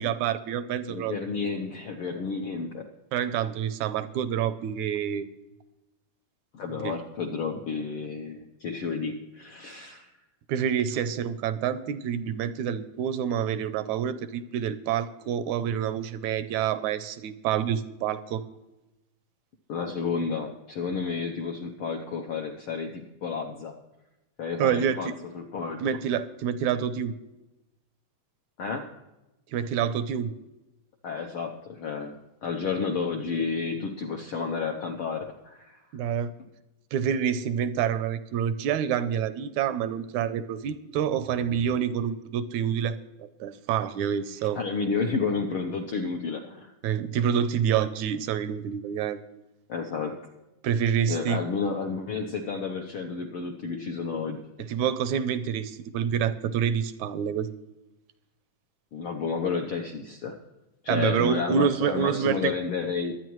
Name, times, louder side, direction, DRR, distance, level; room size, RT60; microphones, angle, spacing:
voice 1, 0.0-1.2 3.1-5.3 6.8-7.0 10.5-18.4 24.6-25.2 25.8-27.2 29.5-30.3 35.9-36.3 36.9-44.6 46.8-49.2 50.6-51.4 54.7-57.5 60.9-62.5, right 8 dB, 75° right, 12 dB, 1.8 m, -27 dB
voice 2, 0.9-2.8 6.5-10.1 19.7-23.7 24.4-25.1 25.3-25.8 28.6-28.8 31.0-32.1 32.4-35.8 44.4-46.7 49.7-50.1 51.1-54.4 58.9-60.4 60.8-63.1, left 5 dB, 80° left, 3 dB, 1.2 m, -31 dB
23.0 x 9.4 x 3.1 m, 0.98 s
omnidirectional pair, 3.7 m